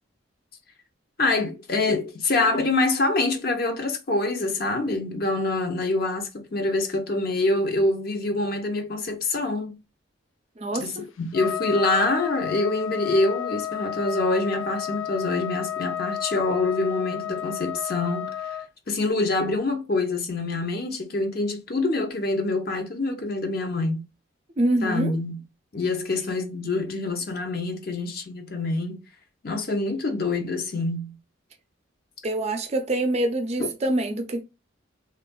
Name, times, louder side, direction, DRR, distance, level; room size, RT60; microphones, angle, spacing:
voice 1, 1.2-9.8 10.7-18.6 18.9-24.0 24.8-25.4 25.7-29.0 29.4-31.2 33.6-33.7, left 2 dB, 50° left, 0.7 m, -25 dB
voice 2, 10.6-11.1 24.6-25.1 32.2-34.4, right 1 dB, 35° right, 0.5 m, -25 dB
Trumpet, 11.3-18.7, left 10 dB, 85° left, 0.4 m, -31 dB
3.4 x 2.4 x 2.2 m
head